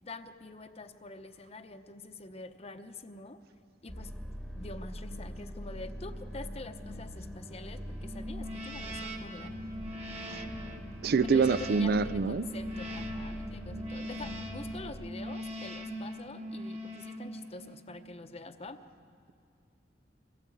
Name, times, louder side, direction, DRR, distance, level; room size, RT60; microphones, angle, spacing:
voice 1, 0.0-3.4 3.8-4.1 4.6-9.6 11.2-18.8, left 2 dB, 35° left, 9 dB, 0.9 m, -46 dB
sound 1, 3.9-14.9, equal, ahead, 1.2 m, -43 dB
sound 2, 8.0-17.9, equal, 35° right, 1.6 m, -41 dB
voice 2, 11.0-12.5, right 5 dB, 60° right, 17 dB, 0.5 m, -25 dB
23.0 x 16.5 x 8.4 m, 2.3 s
head